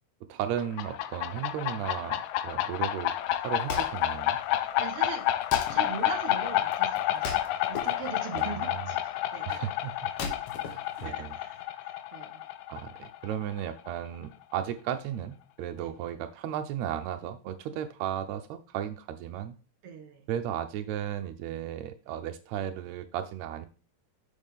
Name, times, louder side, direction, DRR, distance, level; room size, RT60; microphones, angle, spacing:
voice 1, 0.3-3.1 3.4-4.4 8.3-8.9 9.5-9.9 10.7-11.3 12.7-19.5 20.3-23.7, right 10 dB, 85° right, 7 dB, 1.5 m, -35 dB
sound 1, 0.6-14.0, left 13 dB, 85° left, 2.3 m, -30 dB
Wood, 3.3-11.6, left 5 dB, 60° left, 1.8 m, -40 dB
voice 2, 4.8-5.3 5.7-7.4 7.7-9.6 11.0-12.4 15.7-15.9 19.8-20.2, right 6 dB, 60° right, 6 dB, 1.8 m, -41 dB
6.6 x 6.4 x 3.6 m, 0.35 s
omnidirectional pair, 3.8 m